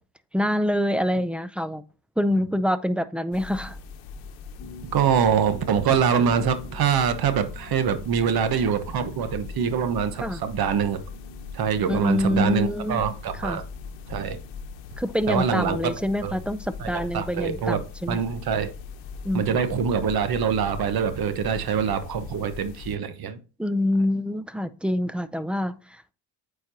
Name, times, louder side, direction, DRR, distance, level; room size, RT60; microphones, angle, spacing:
voice 1, 0.3-1.8 2.2-3.8 10.2-10.4 11.9-13.0 13.4-13.6 15.0-18.2 19.2-19.6 23.6-26.1, left 1 dB, 5° right, 0.4 m, -26 dB
sound 1, 3.3-23.0, left 5 dB, 70° left, 1.0 m, -40 dB
sound 2, 4.6-15.7, left 1 dB, 40° left, 1.3 m, -47 dB
voice 2, 4.9-11.0 11.5-13.6 14.1-14.4 15.3-15.9 16.2-16.3 16.8-18.7 19.3-23.4, right 7 dB, 50° right, 1.1 m, -24 dB
8.7 x 4.6 x 2.8 m
supercardioid pair, 70°, 46 cm